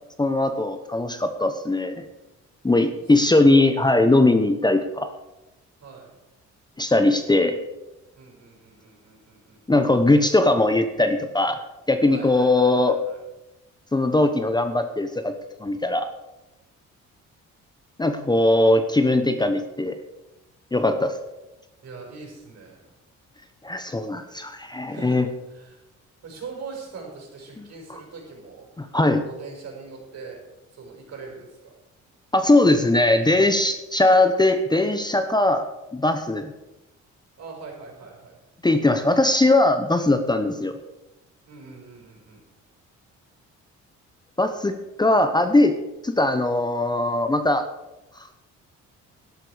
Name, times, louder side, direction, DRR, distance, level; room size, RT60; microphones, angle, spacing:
voice 1, 0.2-2.0 2.6-5.1 6.8-7.6 9.7-11.6 11.9-13.0 13.9-15.3 15.6-16.1 18.0-20.0 20.7-21.2 23.6-25.3 28.8-29.2 32.3-35.7 35.9-36.5 38.6-40.8 44.4-45.7 46.0-47.7 48.2-48.3, left 2 dB, 15° left, 8 dB, 0.9 m, -20 dB
voice 2, 5.8-6.2 8.2-9.6 12.1-13.2 21.8-22.9 24.9-25.8 26.2-28.7 29.2-30.4 30.7-31.7 37.4-38.4 41.5-42.4, right 4 dB, 60° right, 0 dB, 5.5 m, -42 dB
12.0 x 11.5 x 5.0 m, 0.99 s
cardioid pair, 90°, 30 cm